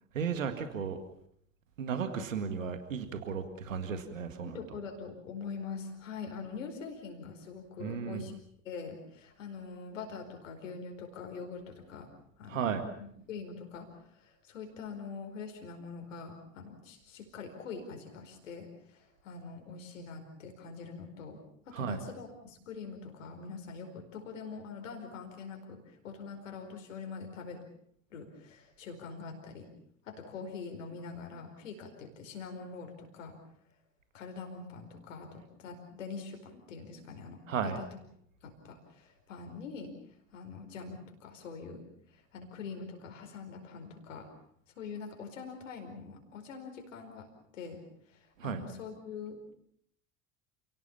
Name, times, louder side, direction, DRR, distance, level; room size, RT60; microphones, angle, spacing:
voice 1, 0.1-1.0 1.8-4.6 7.8-8.3 12.5-12.9 21.7-22.0 37.5-37.8 48.4-48.6, right 6 dB, 75° right, 9 dB, 2.0 m, -34 dB
voice 2, 4.4-8.3 8.6-12.1 12.4-27.6 28.1-29.7 30.0-33.4 34.1-37.9 38.4-39.9 40.3-41.8 42.1-44.3 44.8-47.3 47.5-49.4, left 5 dB, 70° left, 4 dB, 4.9 m, -44 dB
29.5 x 17.5 x 7.2 m, 0.69 s
figure-of-eight pair, 65°, 39 cm